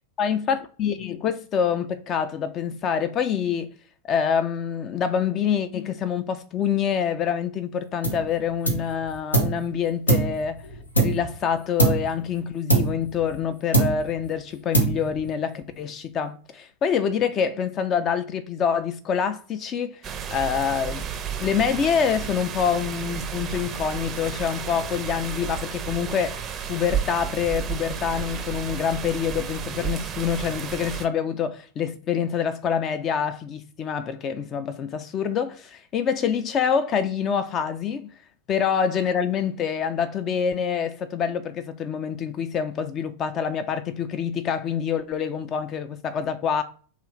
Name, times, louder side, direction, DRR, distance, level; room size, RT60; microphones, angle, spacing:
voice 1, 0.2-3.7 4.1-10.6 11.0-20.0 20.3-21.1 21.4-26.4 26.7-38.1 38.5-46.6, left 7 dB, 30° left, 0.5 m, -26 dB
sound 1, 8.0-8.3 8.6-9.6 10.1-11.4 11.8-12.2 12.7-13.4 13.7-14.3 14.7-15.3, right 3 dB, 80° left, 0.8 m, -23 dB
sound 2, 20.0-31.1, right 8 dB, 25° right, 0.5 m, -32 dB
3.0 x 2.3 x 3.2 m
figure-of-eight pair, 90°, 0 cm